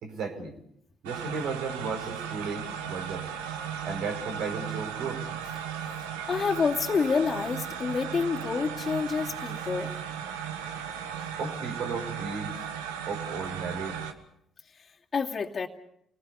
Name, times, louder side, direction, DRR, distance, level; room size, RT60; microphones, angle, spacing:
voice 1, 0.0-0.5 1.0-3.3 3.8-5.2 11.4-12.5 13.1-14.0, right 4 dB, 70° right, 4 dB, 5.2 m, -34 dB
sound 1, 1.1-14.1, right 8 dB, 90° right, 1.7 m, -36 dB
voice 2, 6.3-9.9 15.1-15.7, left 5 dB, 40° left, -3 dB, 2.6 m, -28 dB
28.5 x 20.0 x 6.8 m, 0.74 s
hypercardioid pair, 55°, 0 cm